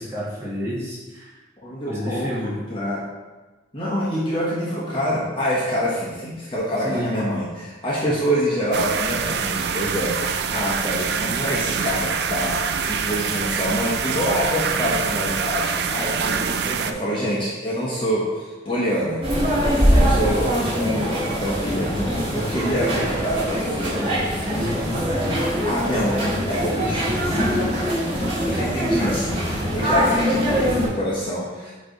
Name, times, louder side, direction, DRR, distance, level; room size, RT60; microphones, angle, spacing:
voice 1, 0.0-1.3 1.9-2.5 6.8-7.3, equal, 15° right, -9 dB, 1.8 m, -29 dB
voice 2, 1.6-3.0 3.7-19.2 19.9-27.6 28.5-31.7, equal, 25° left, -7 dB, 1.2 m, -26 dB
sound 1, 8.7-16.9, right 6 dB, 55° right, 0.4 m, -25 dB
sound 2, 19.2-30.9, equal, 30° right, 2.1 m, -22 dB
8.5 x 3.2 x 4.0 m, 1.2 s
head